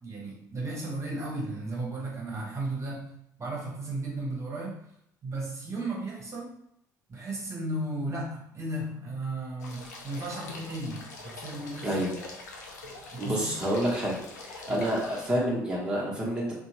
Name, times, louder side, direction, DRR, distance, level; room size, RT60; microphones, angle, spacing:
voice 1, 0.0-4.8 5.2-6.5 7.1-12.0 12.8-13.5 14.7-14.8, right 2 dB, 35° right, -3 dB, 1.1 m, -35 dB
sound 1, 9.6-15.3, left 3 dB, 80° left, 0.4 m, -44 dB
voice 2, 13.2-14.2 14.4-16.5, right 1 dB, 10° right, -5 dB, 0.9 m, -28 dB
2.7 x 2.2 x 3.0 m, 0.72 s
figure-of-eight pair, 55°, 9 cm